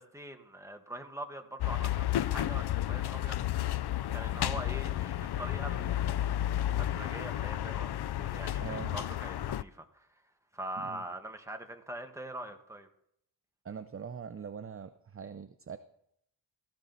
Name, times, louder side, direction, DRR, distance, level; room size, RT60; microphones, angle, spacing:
voice 1, 0.0-3.4 4.1-10.1 10.5-12.9, right 1 dB, 5° right, 5 dB, 1.4 m, -43 dB
sound 1, 1.6-9.6, left 13 dB, 55° left, 0.5 m, -32 dB
voice 2, 8.6-9.0 10.8-11.0 13.6-15.8, right 7 dB, 30° right, 11 dB, 0.6 m, -42 dB
16.5 x 14.5 x 4.0 m, 0.73 s
wide cardioid pair, 115°, 47 cm